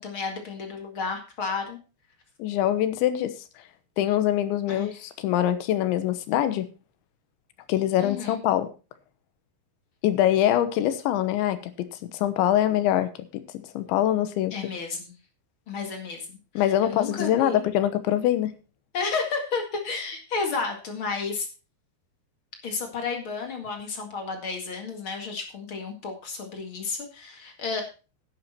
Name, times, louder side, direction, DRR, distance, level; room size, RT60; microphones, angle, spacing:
voice 1, 0.0-1.8 4.7-4.9 8.0-8.4 14.5-15.1 15.7-17.6 18.9-21.5 22.6-27.9, left 4 dB, 45° left, 4 dB, 1.8 m, -32 dB
voice 2, 2.4-3.4 4.0-6.7 7.7-8.7 10.0-13.4 13.7-14.6 16.6-18.5, left 12 dB, 80° left, 12 dB, 3.4 m, -24 dB
11.0 x 10.5 x 4.3 m, 0.33 s
omnidirectional pair, 5.4 m